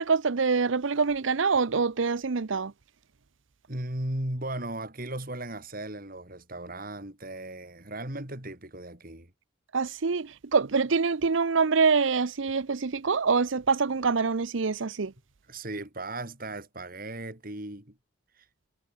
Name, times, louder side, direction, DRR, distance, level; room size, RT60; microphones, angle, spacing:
voice 1, 0.0-2.7 9.7-15.1, right 5 dB, 70° right, 0.7 m, -25 dB
voice 2, 3.7-9.3 15.5-18.0 18.4-18.5, right 1 dB, 45° right, 4.3 m, -36 dB
head